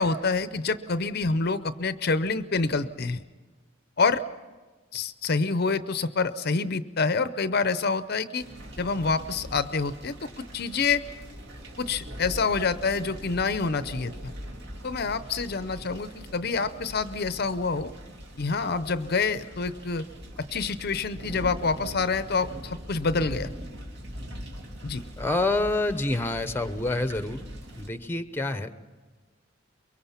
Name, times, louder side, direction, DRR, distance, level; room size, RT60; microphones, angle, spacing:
voice 1, 0.0-3.2 4.0-4.2 4.9-8.5 8.8-11.0 11.8-14.3 14.8-17.9 18.4-20.1 20.5-23.5 24.8-25.0, left 4 dB, 50° left, 13 dB, 0.6 m, -27 dB
sound 1, 8.4-27.9, equal, 55° right, 2.6 m, -42 dB
voice 2, 25.2-27.4 27.8-28.7, left 2 dB, 10° left, 10 dB, 0.8 m, -27 dB
23.5 x 23.0 x 5.8 m, 1.3 s
head